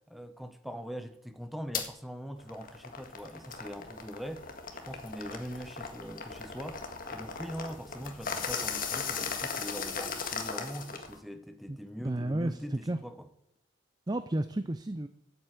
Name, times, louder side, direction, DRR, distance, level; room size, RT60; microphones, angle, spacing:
voice 1, 0.1-4.5 4.8-6.8 7.1-13.3, equal, ahead, 0.9 m, -42 dB
sound 1, 1.7-1.9 2.4-11.2, left 5 dB, 45° left, 1.8 m, -37 dB
voice 2, 11.7-13.0 14.1-15.1, right 1 dB, 20° right, 0.5 m, -32 dB
13.5 x 8.0 x 9.2 m
head